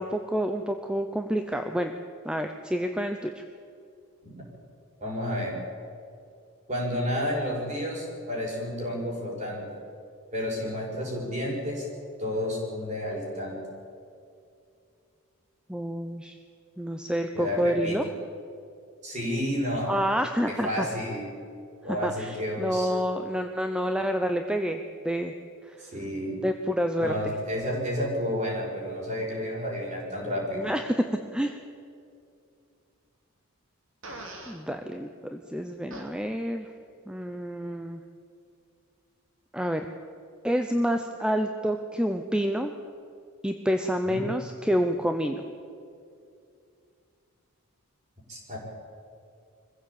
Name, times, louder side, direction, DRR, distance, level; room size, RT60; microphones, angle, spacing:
voice 1, 0.0-1.9 2.2-3.4 15.7-16.4 16.8-18.0 19.9-20.9 22.0-25.3 25.6-25.8 26.4-27.3 30.5-31.0 31.3-31.6 34.5-36.7 37.1-38.0 39.5-39.8 40.4-42.7 43.4-45.4, equal, 5° right, 6 dB, 0.7 m, -28 dB
voice 2, 5.0-5.6 6.7-9.6 10.3-11.9 12.2-13.6 17.3-18.1 19.0-20.0 20.5-21.3 21.8-22.9 25.8-26.4 27.0-30.6 44.0-44.2 48.3-48.6, left 1 dB, 30° right, -2 dB, 6.2 m, -31 dB
Fart, 34.0-34.6 35.9-36.1, right 2 dB, 60° right, 3.0 m, -41 dB
23.5 x 15.5 x 8.7 m, 2.5 s
head